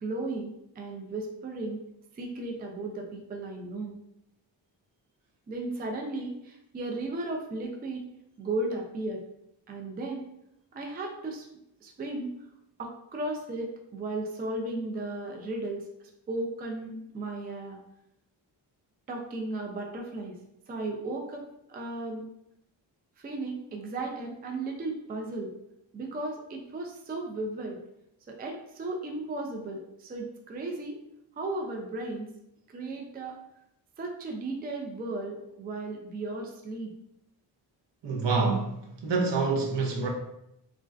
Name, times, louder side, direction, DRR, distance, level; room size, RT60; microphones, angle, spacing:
voice 1, 0.0-1.8 2.1-4.0 5.5-8.0 8.4-9.2 9.7-10.3 10.7-11.5 11.8-12.3 12.8-17.8 19.1-20.4 20.7-22.2 23.2-25.5 25.9-27.8 28.3-31.0 31.4-32.3 32.7-33.4 34.0-36.9, right 2 dB, 20° right, 1 dB, 0.4 m, -35 dB
voice 2, 38.0-40.1, right 4 dB, 60° right, 1 dB, 0.7 m, -27 dB
2.5 x 2.1 x 2.4 m, 0.81 s
cardioid pair, 50°, 48 cm